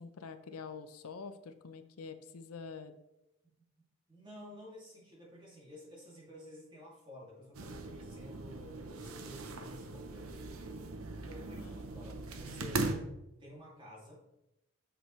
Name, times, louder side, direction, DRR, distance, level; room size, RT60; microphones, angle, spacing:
voice 1, 0.0-3.0 11.6-11.7, left 5 dB, 90° left, 10 dB, 0.6 m, -46 dB
voice 2, 3.6-10.3 11.2-13.0 13.4-14.2, equal, 20° right, -4 dB, 2.3 m, -52 dB
sound 1, 7.5-12.9, right 3 dB, 75° right, 0.8 m, -40 dB
7.9 x 6.2 x 3.1 m, 0.89 s
head